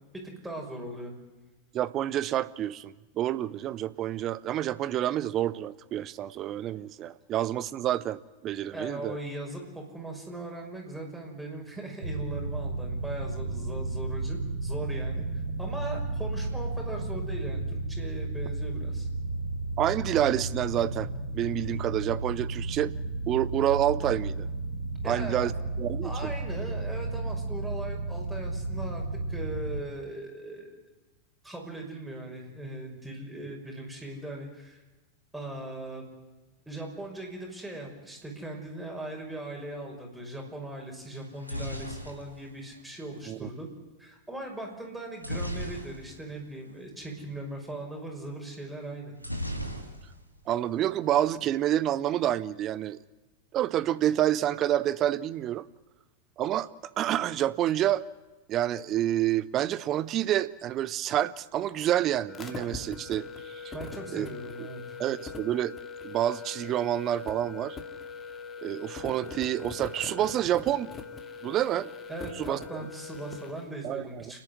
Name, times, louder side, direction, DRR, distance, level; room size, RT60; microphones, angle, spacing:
voice 1, 0.1-1.1 8.7-19.1 25.0-25.6 26.0-29.0 29.3-30.8 31.4-34.8 35.3-36.0 36.7-43.7 44.0-49.1 63.7-65.0 72.1-74.4, right 1 dB, 5° right, 0 dB, 5.9 m, -39 dB
voice 2, 1.7-9.2 19.8-21.1 21.3-22.9 23.3-24.5 25.1-25.5 25.8-26.3 43.3-43.5 50.5-53.0 53.5-55.6 56.4-56.7 57.0-58.0 58.5-63.7 64.1-64.3 65.0-65.7 66.0-67.8 68.6-70.9 71.4-71.9 72.4-72.6 73.8-74.2, right 12 dB, 35° right, 17 dB, 0.8 m, -28 dB
sound 1, 12.0-29.8, right 2 dB, 70° right, 3.5 m, -33 dB
sound 2, 41.2-43.3 45.2-46.4 46.7-46.8 47.0-47.3 49.2-50.4 50.7-51.3, equal, 90° left, 2.2 m, -37 dB
sound 3, 62.3-73.6, left 4 dB, 20° left, 2.5 m, -41 dB
29.5 x 10.5 x 9.8 m, 1.2 s
figure-of-eight pair, 90°, 0 cm